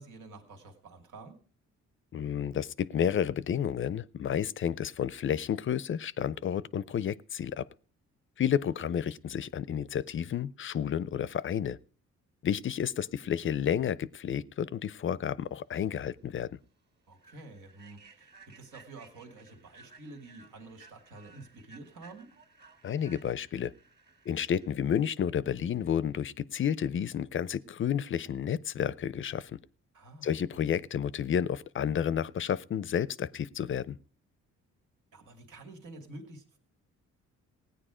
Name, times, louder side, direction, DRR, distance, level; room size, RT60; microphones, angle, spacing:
voice 1, 0.0-1.4 8.7-8.8 17.1-22.3 29.9-30.3 35.1-36.6, right 2 dB, 85° right, 4 dB, 2.4 m, -49 dB
voice 2, 2.1-7.7 8.4-11.8 12.4-16.5 22.8-23.7 24.3-29.5 30.2-34.0, left 8 dB, 40° left, 20 dB, 0.5 m, -31 dB
Human voice / Train, 15.8-16.0 16.4-16.6 17.1-24.7, right 3 dB, 35° right, 2.0 m, -58 dB
16.5 x 9.5 x 5.0 m, 0.44 s
cardioid pair, 90°, 30 cm